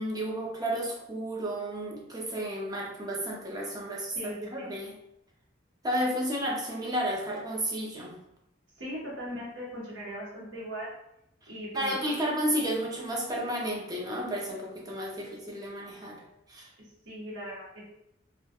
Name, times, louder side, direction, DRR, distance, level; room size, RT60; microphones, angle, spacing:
voice 1, 0.0-4.9 5.8-8.1 11.7-16.2 16.5-16.7, equal, 20° right, -1 dB, 0.5 m, -32 dB
voice 2, 4.1-4.7 8.8-10.9 11.5-12.2 17.1-17.6, equal, 75° right, -7 dB, 0.9 m, -39 dB
2.2 x 2.1 x 2.7 m, 0.80 s
head